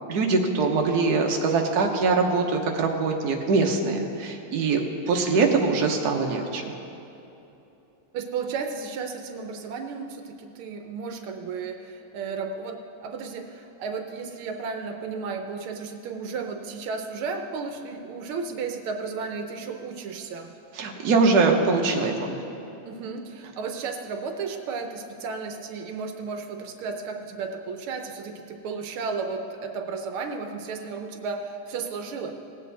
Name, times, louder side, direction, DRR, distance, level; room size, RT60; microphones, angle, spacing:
voice 1, 0.1-6.6 20.7-22.4, right 4 dB, 55° right, 1 dB, 1.4 m, -23 dB
voice 2, 8.1-20.5 22.8-32.3, right 5 dB, 80° right, 5 dB, 1.6 m, -33 dB
18.5 x 8.2 x 4.1 m, 2.9 s
omnidirectional pair, 2.3 m